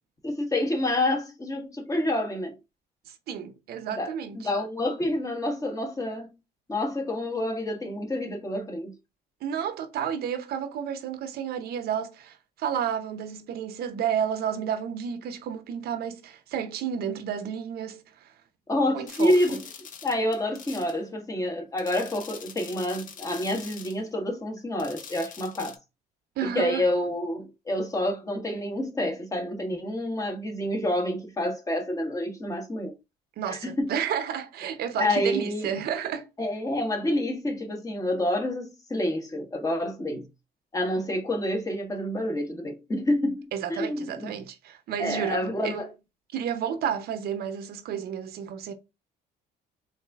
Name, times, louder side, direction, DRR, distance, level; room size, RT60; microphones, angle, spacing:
voice 1, 0.2-2.5 3.9-4.1 4.4-6.3 6.7-8.9 18.7-19.6 20.0-25.8 26.4-32.9 33.5-33.9 35.0-35.7 36.4-40.3 40.7-44.3 45.0-45.9, left 1 dB, 20° left, 1.2 m, -28 dB
voice 2, 3.3-4.5 9.4-18.3 18.9-19.6 26.4-26.8 33.4-36.3 43.5-45.8 46.3-48.7, right 8 dB, 65° right, 0.7 m, -31 dB
sound 1, 19.1-21.0 21.8-24.0 24.8-25.8, left 7 dB, 50° left, 0.8 m, -44 dB
4.0 x 2.6 x 3.4 m
cardioid pair, 110°, 17 cm